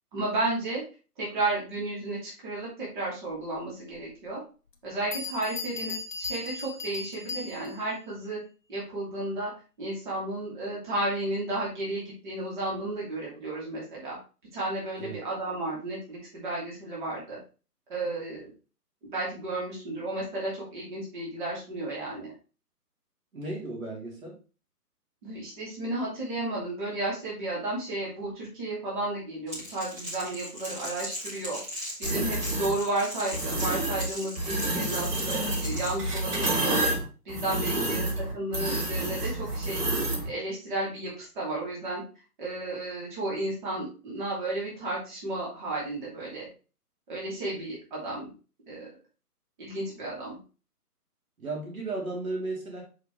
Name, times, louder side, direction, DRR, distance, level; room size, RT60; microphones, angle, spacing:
voice 1, 0.1-0.8 1.2-4.4 4.8-8.4 8.7-9.5 9.8-14.2 14.5-17.4 17.9-18.5 19.0-22.3 25.2-36.9 37.2-39.8 40.2-42.0 42.4-46.5 47.1-48.3 48.7-48.9 49.6-50.4, right 2 dB, 30° right, -6 dB, 2.8 m, -33 dB
Bell, 3.9-4.0 4.7-4.8 5.1-7.9, left 4 dB, 30° left, 0.7 m, -37 dB
voice 2, 23.3-24.4 32.1-32.3 37.7-38.0 51.4-52.8, right 2 dB, 60° right, -2 dB, 3.3 m, -35 dB
Crackle, 29.5-36.0, left 1 dB, 10° right, 1.0 m, -38 dB
sound 1, 32.0-32.7 33.3-34.1 34.4-40.3, right 1 dB, 75° right, 3.5 m, -29 dB
6.4 x 5.3 x 3.2 m, 0.34 s
hypercardioid pair, 160°, 47 cm